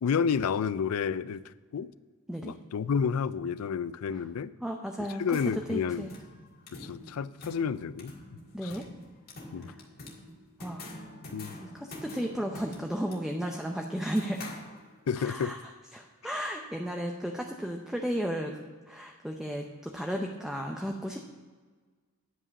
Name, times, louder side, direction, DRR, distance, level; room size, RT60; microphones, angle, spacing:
voice 1, 0.0-1.9 2.4-4.5 5.2-6.1 6.7-8.1 8.6-8.7 9.5-9.7 11.3-11.5 15.1-15.5, left 6 dB, 85° left, 17 dB, 0.4 m, -30 dB
voice 2, 4.6-6.1 8.5-8.9 9.6-9.8 10.6-10.9 11.6-14.5 15.2-18.6 18.9-21.2, equal, 5° right, 2 dB, 0.6 m, -34 dB
sound 1, 5.0-15.2, left 2 dB, 45° left, 1.8 m, -47 dB
9.8 x 5.5 x 7.0 m, 1.5 s
head